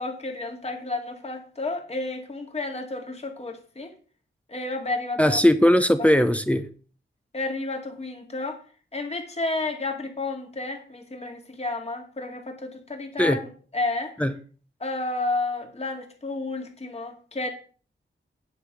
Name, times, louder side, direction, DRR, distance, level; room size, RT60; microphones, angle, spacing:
voice 1, 0.0-3.9 4.5-5.4 6.0-6.1 7.3-8.6 8.9-13.4 13.7-14.1 14.8-17.5, left 2 dB, 30° left, 3 dB, 2.1 m, -31 dB
voice 2, 5.2-6.6 13.2-13.4 14.2-14.3, equal, 5° left, 9 dB, 0.7 m, -19 dB
10.0 x 5.6 x 6.7 m, 0.40 s
wide cardioid pair, 145°, 20 cm